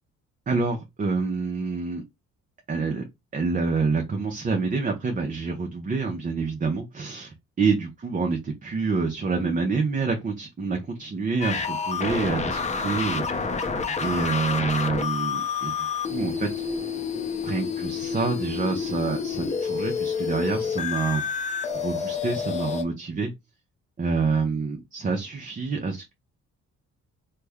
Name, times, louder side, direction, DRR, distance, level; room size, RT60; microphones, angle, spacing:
voice 1, 0.5-2.0 2.7-3.0 3.3-13.6 14.0-16.6 17.4-21.2 21.8-23.3 24.0-26.1, right 4 dB, 25° right, 0.6 m, -27 dB
sound 1, 11.4-22.8, left 5 dB, 25° left, 0.6 m, -29 dB
3.2 x 2.1 x 3.4 m
cardioid pair, 90°, 30 cm